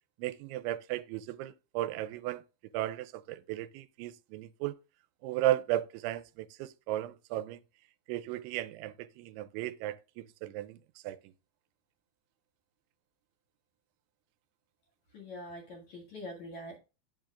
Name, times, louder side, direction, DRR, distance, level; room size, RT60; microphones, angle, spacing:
voice 1, 0.2-2.4 2.7-4.7 5.2-7.6 8.1-10.8 11.0-11.2, right 14 dB, 85° right, 2.9 m, -35 dB
voice 2, 15.1-16.8, left 1 dB, 50° left, 2.4 m, -44 dB
9.6 x 7.4 x 2.5 m
omnidirectional pair, 5.3 m